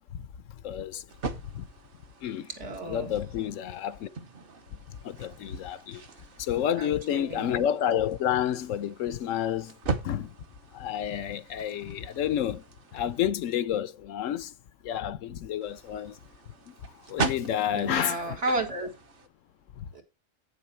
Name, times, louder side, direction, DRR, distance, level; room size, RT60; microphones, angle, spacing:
voice 1, 0.6-1.0 1.5-1.7 2.2-2.5 2.9-4.1 5.0-6.0 6.4-9.7 10.0-10.3 10.7-12.6 12.9-14.5 14.8-16.2 16.7-16.8 17.1-18.4 19.8-19.9, left 10 dB, 85° left, 1.0 m, -30 dB
sound 1, 1.1-13.2 15.6-19.3, right 4 dB, 50° right, 1.1 m, -40 dB
voice 2, 2.6-3.1 6.8-7.6 17.7-18.9 19.9-20.0, right 2 dB, 65° right, 2.2 m, -32 dB
8.9 x 7.0 x 4.3 m
omnidirectional pair, 1.3 m